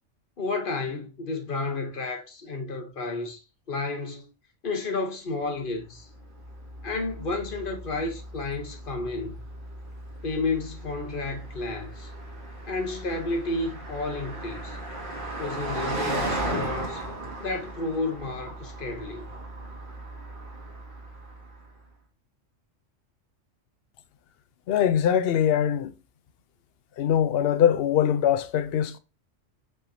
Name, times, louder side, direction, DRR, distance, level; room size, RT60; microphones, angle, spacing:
voice 1, 0.4-3.4 3.7-4.3 4.6-6.1 6.8-9.4 10.2-12.1 12.7-14.8 15.4-17.0 17.4-19.3, left 3 dB, 45° left, 1.1 m, -31 dB
Car passing by, 5.9-21.7, right 2 dB, 40° right, 1.8 m, -37 dB
voice 2, 24.7-25.9 27.0-29.0, left 9 dB, 65° left, 0.7 m, -22 dB
5.3 x 3.6 x 2.6 m
omnidirectional pair, 1.3 m